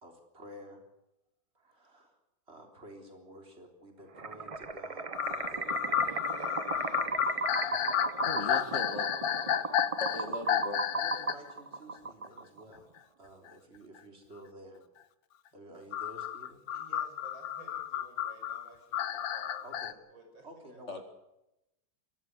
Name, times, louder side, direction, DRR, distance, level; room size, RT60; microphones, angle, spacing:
voice 1, 0.0-0.8 1.5-2.2 2.5-6.2 10.9-12.8 13.2-14.8 15.5-16.6 19.6-19.9 20.4-21.0, equal, 30° right, 3 dB, 4.0 m, -51 dB
sound 1, 4.2-12.6, right 4 dB, 55° right, 0.3 m, -36 dB
sound 2, 5.1-11.5 12.0-12.1 13.5-13.6 15.9-19.9, left 10 dB, 75° left, 1.7 m, -32 dB
voice 2, 6.1-9.6 16.7-19.6 20.1-20.8, right 2 dB, 75° right, 3 dB, 6.7 m, -55 dB
voice 3, 8.2-9.1 10.0-10.8 20.9-21.0, left 2 dB, 35° left, 5 dB, 2.3 m, -38 dB
22.5 x 14.0 x 9.8 m, 0.90 s
omnidirectional pair, 2.1 m